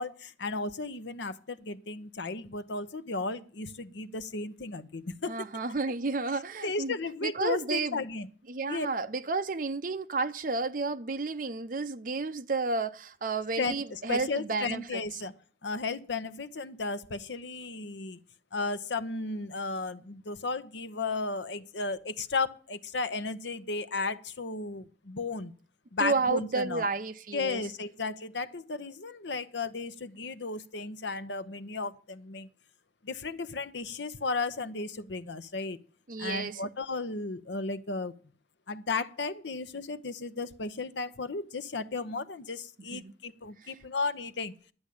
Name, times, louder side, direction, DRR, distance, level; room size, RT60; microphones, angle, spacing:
voice 1, 0.0-5.5 6.6-8.3 8.7-8.9 13.6-15.3 15.6-18.2 18.5-25.5 25.9-26.9 27.3-32.5 33.0-35.8 36.2-38.1 38.7-44.5, left 3 dB, 75° left, 0.9 m, -34 dB
voice 2, 5.3-6.9 7.2-8.0 8.5-15.0 26.0-27.6 36.1-36.6 42.9-43.1 43.6-43.8, right 3 dB, 45° right, 0.7 m, -31 dB
12.0 x 8.0 x 8.6 m
head